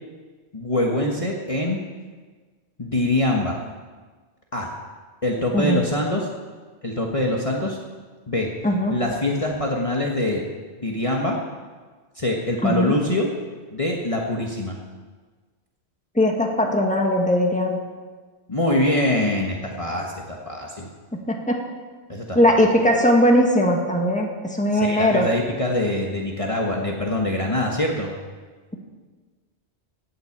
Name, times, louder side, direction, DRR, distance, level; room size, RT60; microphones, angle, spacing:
voice 1, 0.5-1.8 2.8-3.6 4.5-4.7 5.2-6.2 6.8-7.8 8.3-8.5 8.9-10.4 10.8-11.4 12.1-13.3 13.7-14.8 18.5-20.9 22.1-22.4 24.7-28.1, left 1 dB, 30° left, -1 dB, 1.5 m, -24 dB
voice 2, 8.6-8.9 12.6-12.9 16.2-17.8 21.3-21.6 22.4-25.3, equal, 5° left, 1 dB, 1.7 m, -19 dB
17.5 x 7.6 x 7.4 m, 1.4 s
omnidirectional pair, 1.1 m